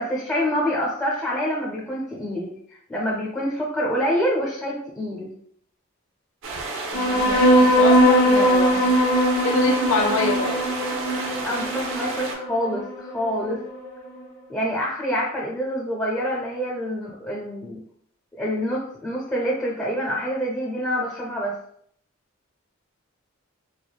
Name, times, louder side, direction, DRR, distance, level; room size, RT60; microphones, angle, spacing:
voice 1, 0.0-2.5 2.9-5.3 11.4-13.6 14.5-17.8 18.3-21.5, equal, 15° left, -4 dB, 0.5 m, -26 dB
sound 1, 6.4-12.4, right 3 dB, 70° right, 0.5 m, -31 dB
sound 2, 6.9-13.9, equal, 45° left, 0.8 m, -20 dB
voice 2, 7.1-8.9 9.4-10.6, left 3 dB, 75° left, 3 dB, 0.6 m, -25 dB
3.3 x 2.0 x 2.3 m, 0.66 s
head